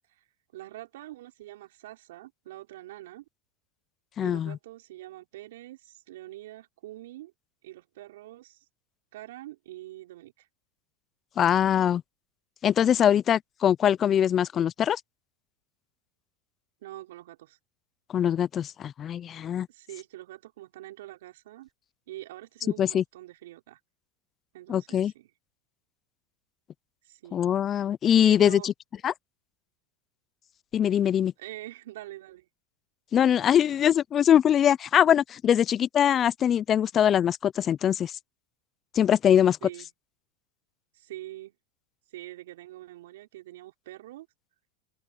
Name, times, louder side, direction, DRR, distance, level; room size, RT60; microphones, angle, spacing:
voice 1, 0.5-3.2 4.2-7.3 7.6-8.6 9.1-10.5 16.8-17.6 19.7-21.7 22.1-23.8 24.5-25.3 27.0-27.4 28.2-28.7 31.4-32.5 39.6-39.9 40.9-41.6 42.1-44.3, right 16 dB, 75° right, 6.0 m, -44 dB
voice 2, 4.2-4.6 11.4-12.0 12.6-15.0 18.1-19.7 22.8-23.0 24.7-25.1 27.3-28.7 29.0-29.1 30.7-31.3 33.1-38.1 38.9-39.6, left 9 dB, 35° left, 0.5 m, -22 dB
open air
hypercardioid pair, 95°, 0 cm